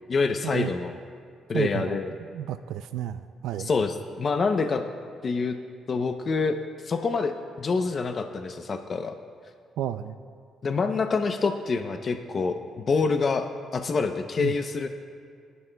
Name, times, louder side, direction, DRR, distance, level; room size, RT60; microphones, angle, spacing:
voice 1, 0.1-0.9 1.5-2.1 3.6-4.8 5.2-5.6 5.9-9.1 10.6-13.5 13.7-14.9, left 4 dB, 45° left, 6 dB, 0.7 m, -26 dB
voice 2, 1.5-2.0 2.3-3.7 9.8-10.2 14.4-14.5, right 10 dB, 85° right, 10 dB, 0.4 m, -31 dB
29.0 x 11.0 x 2.3 m, 2.2 s
cardioid pair, 90°, 0 cm